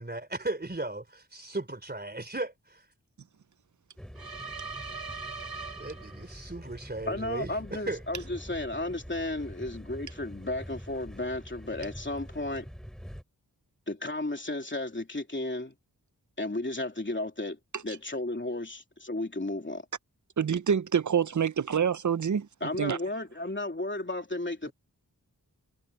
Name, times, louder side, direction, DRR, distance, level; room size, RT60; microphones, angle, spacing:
voice 1, 0.0-2.8 5.8-8.0, right 2 dB, 25° right, 3.4 m, -36 dB
sound 1, 4.0-13.2, equal, ahead, 4.5 m, -45 dB
sound 2, 4.2-6.5, right 4 dB, 80° right, 4.0 m, -40 dB
voice 2, 7.1-12.7 13.9-15.7 16.4-17.6 17.8-19.8 22.6-24.7, left 2 dB, 30° left, 3.1 m, -33 dB
voice 3, 20.4-22.5 22.8-23.0, right 7 dB, 55° right, 0.6 m, -26 dB
wide cardioid pair, 55°, 36 cm